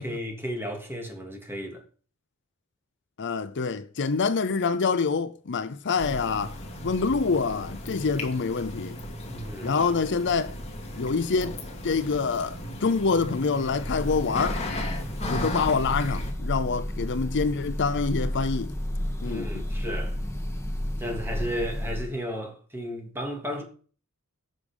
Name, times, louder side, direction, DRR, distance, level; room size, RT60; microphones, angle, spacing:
voice 1, 0.0-1.8 9.3-9.8 19.2-20.2 21.0-23.6, equal, 10° right, 2.8 m, -34 dB
voice 2, 3.2-6.6 6.8-9.0 9.6-10.6 11.0-11.6 11.8-14.6 15.3-18.7 19.2-19.6, left 4 dB, 55° left, 0.6 m, -26 dB
sound 1, 6.0-16.3, left 1 dB, 30° left, 2.6 m, -36 dB
Breathing / Bird, 13.6-22.2, left 1 dB, 10° left, 1.7 m, -32 dB
17.0 x 6.3 x 5.4 m
head